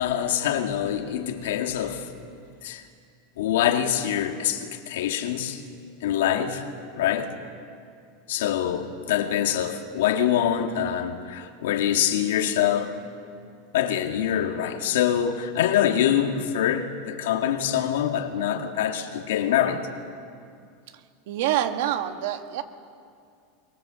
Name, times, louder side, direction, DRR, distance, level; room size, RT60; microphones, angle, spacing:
voice 1, 0.0-2.1 2.6-2.8 3.4-5.6 6.0-6.6 7.0-7.3 8.3-12.9 13.7-19.9, left 10 dB, 85° left, 2.1 m, -25 dB
voice 2, 21.3-22.6, right 11 dB, 60° right, 1.7 m, -26 dB
23.5 x 22.0 x 7.7 m
supercardioid pair, 180°, 0 cm